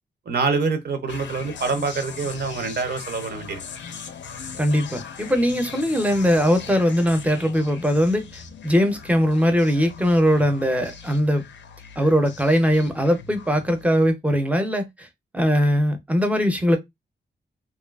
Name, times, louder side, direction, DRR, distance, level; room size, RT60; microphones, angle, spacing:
voice 1, 0.3-3.6, right 4 dB, 60° right, 0.6 m, -25 dB
sound 1, 1.1-14.1, left 6 dB, 80° left, 0.4 m, -40 dB
voice 2, 4.6-11.4 12.0-15.1 15.3-16.8, equal, 10° right, 0.5 m, -20 dB
2.6 x 2.3 x 2.2 m
wide cardioid pair, 120°, 18 cm